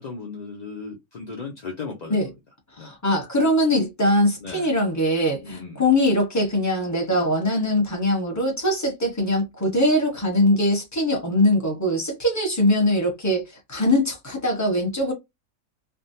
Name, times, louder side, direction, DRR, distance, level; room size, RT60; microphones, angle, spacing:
voice 1, 0.0-2.2 2.8-3.0 4.4-4.7 5.4-5.8 7.1-7.3, left 4 dB, 50° left, 0.5 m, -36 dB
voice 2, 2.8-15.1, left 1 dB, 15° left, 1.0 m, -22 dB
3.5 x 2.3 x 2.7 m
omnidirectional pair, 1.6 m